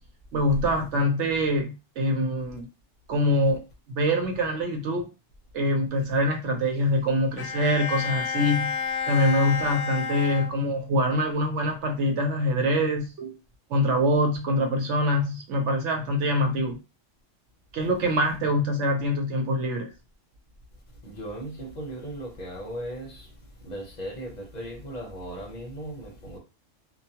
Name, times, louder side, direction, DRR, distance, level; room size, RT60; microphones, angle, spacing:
voice 1, 0.3-2.7 3.1-3.6 3.9-5.1 5.5-8.7 9.1-13.3 13.7-16.8 17.7-19.9, equal, 70° right, 1.0 m, -24 dB
Bowed string instrument, 7.4-11.0, left 6 dB, 75° left, 0.9 m, -31 dB
voice 2, 21.0-23.3 23.6-26.4, right 1 dB, 40° left, 0.8 m, -37 dB
2.3 x 2.2 x 2.8 m
omnidirectional pair, 1.3 m